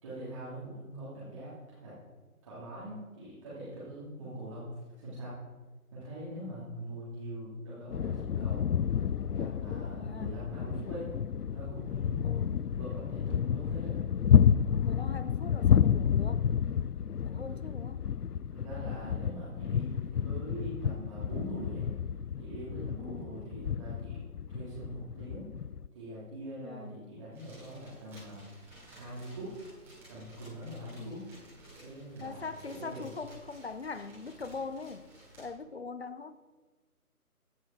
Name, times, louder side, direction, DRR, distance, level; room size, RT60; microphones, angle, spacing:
voice 1, 0.0-1.9 2.4-5.4 5.9-8.7 9.3-11.1 11.5-12.3 12.8-13.9 17.5-17.6 18.5-21.9 22.4-24.2 24.5-25.5 25.9-28.4 29.0-29.6 30.1-31.2 31.7-33.1, right 1 dB, 20° right, -10 dB, 2.8 m, -43 dB
sound 1, 7.9-25.9, left 8 dB, 85° left, 0.5 m, -30 dB
voice 2, 10.0-10.4 12.2-12.7 14.8-16.5 17.2-18.1 23.0-23.6 26.6-27.3 31.0-31.3 32.2-35.1 35.4-36.4, left 4 dB, 45° left, 14 dB, 0.7 m, -42 dB
sound 2, 27.3-35.5, right 1 dB, 5° right, 3.0 m, -55 dB
15.0 x 9.4 x 4.8 m, 1.3 s
figure-of-eight pair, 155°, 45 cm